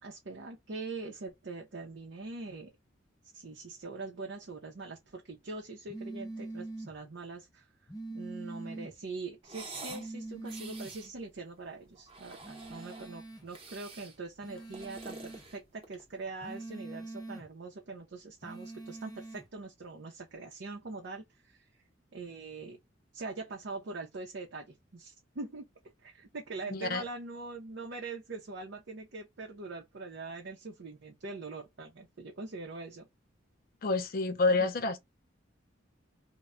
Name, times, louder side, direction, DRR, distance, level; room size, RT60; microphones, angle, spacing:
voice 1, 0.0-2.7 3.3-7.7 8.1-21.6 22.1-22.8 23.1-25.7 26.0-33.1 34.6-34.7, right 3 dB, 65° right, 0.6 m, -43 dB
sound 1, 5.9-6.9 7.9-8.9 9.9-10.9 12.4-13.5 14.4-15.5 16.4-17.5 18.4-19.4, right 2 dB, 20° left, 0.8 m, -43 dB
sound 2, 9.4-10.1 10.4-11.1 12.0-13.1 13.5-14.2 14.6-16.1, right 3 dB, 30° right, 0.8 m, -47 dB
voice 2, 26.7-27.0 33.8-35.0, left 3 dB, 50° left, 0.5 m, -28 dB
2.2 x 2.1 x 3.5 m
head